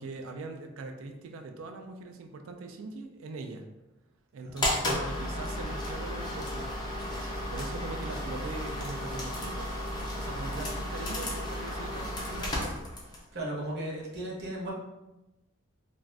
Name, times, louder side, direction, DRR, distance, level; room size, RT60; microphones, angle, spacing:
voice 1, 0.0-3.6 4.3-6.7 7.1-12.8, right 3 dB, 75° right, 5 dB, 0.3 m, -41 dB
sound 1, 4.6-13.3, left 1 dB, 20° left, 0.5 m, -33 dB
voice 2, 13.3-14.7, right 1 dB, 55° right, -3 dB, 0.8 m, -35 dB
2.5 x 2.3 x 3.2 m, 1.0 s
head